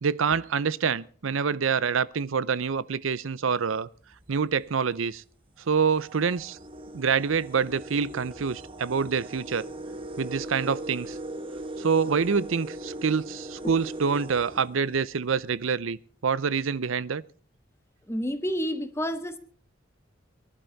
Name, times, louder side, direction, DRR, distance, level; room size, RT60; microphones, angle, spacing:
voice 1, 0.0-3.9 4.3-5.2 5.7-6.6 6.9-9.7 10.2-11.2 11.8-16.0 16.2-17.2, right 6 dB, 85° right, 0.6 m, -26 dB
sound 1, 4.0-4.3 5.1-5.2 5.6-15.4, right 1 dB, 25° right, 1.4 m, -39 dB
voice 2, 18.1-19.4, equal, 15° left, 1.3 m, -29 dB
23.5 x 11.5 x 4.0 m
head